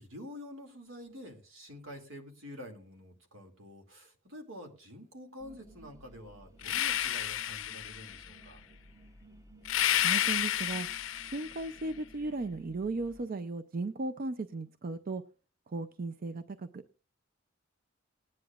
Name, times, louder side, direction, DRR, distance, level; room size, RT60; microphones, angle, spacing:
voice 1, 0.0-8.6, left 1 dB, 80° right, 4 dB, 2.5 m, -48 dB
sound 1, 5.4-13.3, right 1 dB, 15° right, 0.7 m, -56 dB
sound 2, 6.6-8.3 9.6-11.7, left 11 dB, 75° left, 0.6 m, -31 dB
voice 2, 10.0-10.9 11.2-15.2 15.7-16.8, right 3 dB, 45° right, 10 dB, 0.5 m, -36 dB
20.0 x 9.7 x 2.4 m, 0.34 s
head